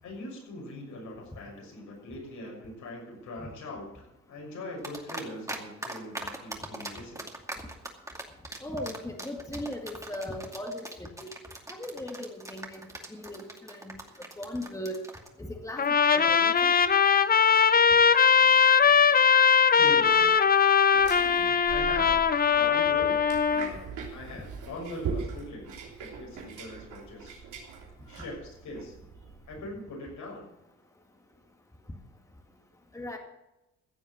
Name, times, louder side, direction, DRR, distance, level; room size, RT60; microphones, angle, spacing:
voice 1, 0.0-7.2 19.8-20.3 21.7-22.2 22.4-27.4 28.1-29.0 29.5-30.5, left 1 dB, 75° left, -1 dB, 6.6 m, -41 dB
sound 1, 4.8-5.6 5.8-15.3, right 1 dB, 10° right, 2.4 m, -39 dB
voice 2, 8.6-11.3 11.7-14.0 14.4-15.0 15.4-15.8 16.1-16.8 32.9-33.2, left 1 dB, 10° left, 3 dB, 2.0 m, -38 dB
Trumpet, 15.8-23.7, left 6 dB, 30° left, 0.8 m, -21 dB
sound 2, 20.9-29.6, right 5 dB, 85° right, 3.3 m, -40 dB
15.5 x 7.1 x 7.3 m, 0.95 s
cardioid pair, 90°, 30 cm